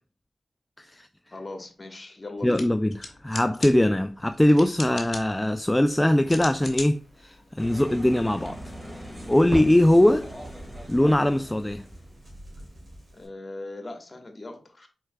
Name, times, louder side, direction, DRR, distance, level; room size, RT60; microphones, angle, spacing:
voice 1, 0.8-1.1 2.4-8.6 9.3-10.3 10.9-11.9, left 1 dB, 15° left, 0.3 m, -21 dB
voice 2, 1.3-2.5 13.1-14.9, left 2 dB, 40° left, 1.3 m, -39 dB
sound 1, 2.4-8.5, left 3 dB, 55° left, 1.0 m, -41 dB
Crackle, 5.5-13.3, right 1 dB, 50° right, 2.4 m, -42 dB
sound 2, 7.6-12.2, equal, 10° right, 1.8 m, -41 dB
4.6 x 4.4 x 2.3 m
cardioid pair, 45°, 0 cm